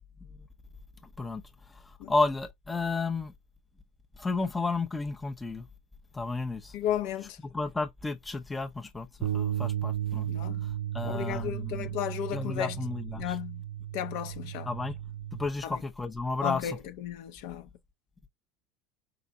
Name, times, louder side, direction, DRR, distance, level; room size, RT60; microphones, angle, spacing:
voice 1, 2.1-3.3 4.2-5.6 6.1-6.7 7.5-10.3 10.9-11.9 12.3-13.4 14.7-14.9 15.4-16.8, left 3 dB, 10° left, 0.6 m, -32 dB
voice 2, 6.7-7.4 10.3-10.6 11.0-12.8 13.2-13.6 13.9-14.7 15.6-15.8 16.4-17.7, left 10 dB, 65° left, 0.8 m, -34 dB
Bass guitar, 9.2-15.5, right 11 dB, 90° right, 0.6 m, -34 dB
5.1 x 3.9 x 2.3 m
cardioid pair, 150°, 0 cm